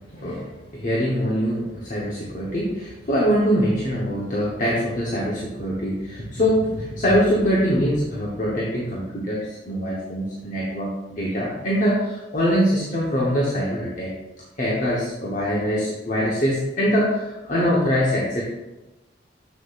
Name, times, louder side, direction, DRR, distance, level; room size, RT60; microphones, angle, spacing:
voice 1, 0.1-14.1 14.6-18.4, equal, 45° left, -5 dB, 1.1 m, -23 dB
7.6 x 6.5 x 2.5 m, 1.0 s
head